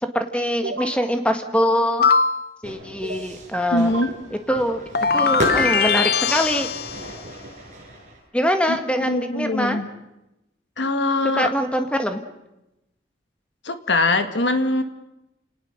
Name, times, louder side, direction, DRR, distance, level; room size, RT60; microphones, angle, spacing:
voice 1, 0.0-2.0 2.6-3.9 4.5-4.8 5.1-6.7 8.3-9.8 11.3-12.2, equal, 5° left, 6 dB, 1.7 m, -23 dB
sound 1, 0.6-1.0 3.0-3.6 3.9-4.7, right 2 dB, 70° right, 1.8 m, -32 dB
sound 2, 2.0-2.5 4.9-7.1, left 5 dB, 55° left, 0.9 m, -20 dB
Fire / Fireworks, 2.6-8.2, right 1 dB, 40° right, 7.3 m, -34 dB
voice 2, 3.7-4.1 8.7-8.8 9.1-9.9 10.8-11.5 13.6-14.8, left 2 dB, 75° left, 8 dB, 1.7 m, -22 dB
30.0 x 19.0 x 6.6 m, 0.93 s
head